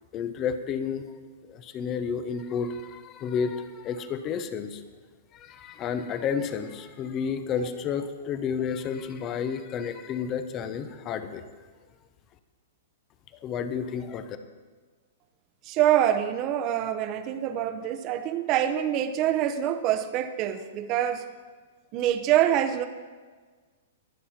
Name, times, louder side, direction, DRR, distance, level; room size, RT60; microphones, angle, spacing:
voice 1, 0.1-1.1 1.5-4.8 5.3-11.5 13.4-14.4, left 6 dB, 30° left, 10 dB, 0.9 m, -31 dB
voice 2, 15.6-21.2 21.9-22.9, right 11 dB, 35° right, 10 dB, 0.9 m, -25 dB
22.0 x 7.5 x 4.4 m, 1.4 s
hypercardioid pair, 145°, 0 cm